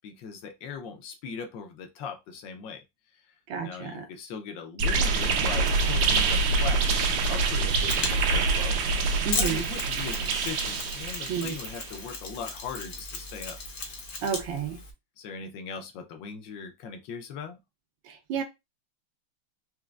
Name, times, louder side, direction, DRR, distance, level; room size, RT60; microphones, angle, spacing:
voice 1, 0.0-2.8 3.1-3.4 3.6-8.8 9.2-13.6 15.2-17.6, left 6 dB, 65° left, 1.3 m, -39 dB
voice 2, 3.5-4.1 9.2-9.7 11.3-11.5 14.2-14.8 18.0-18.4, right 7 dB, 65° right, 1.4 m, -31 dB
sound 1, 4.8-11.8, right 4 dB, 85° right, 1.6 m, -26 dB
Mechanisms, 7.7-14.9, left 3 dB, 50° left, 0.9 m, -36 dB
4.5 x 2.9 x 2.4 m
omnidirectional pair, 2.4 m